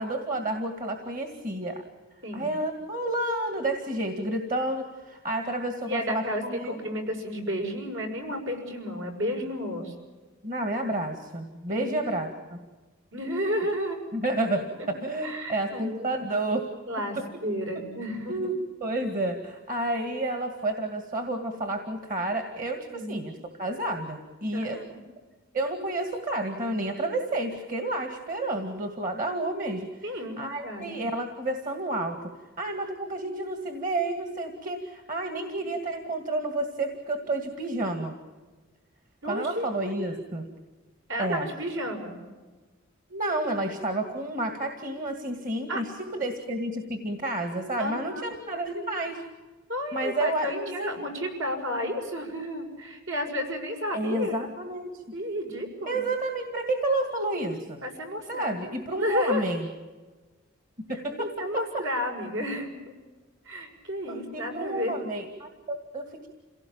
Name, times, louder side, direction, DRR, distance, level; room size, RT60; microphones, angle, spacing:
voice 1, 0.0-1.8 2.3-6.8 10.4-12.6 14.1-16.7 18.3-18.5 18.8-24.8 25.5-29.9 30.4-32.3 32.6-38.2 39.3-40.4 41.2-41.5 43.1-45.8 46.1-49.2 49.9-50.9 53.9-55.0 55.9-57.8 58.3-59.7 60.9-61.6 64.1-66.3, right 1 dB, 40° right, 5 dB, 2.2 m, -30 dB
voice 2, 5.9-9.9 11.7-11.9 13.1-14.0 14.8-14.9 15.2-16.1 16.9-18.4 22.9-23.2 24.5-25.0 30.0-31.0 35.5-35.6 39.2-39.7 41.1-42.2 45.7-45.8 47.8-48.2 49.7-54.4 55.1-56.0 57.8-58.6 59.0-59.5 60.9-62.9 63.4-65.1, equal, 70° right, 3 dB, 6.3 m, -32 dB
28.0 x 18.0 x 8.9 m, 1.3 s
head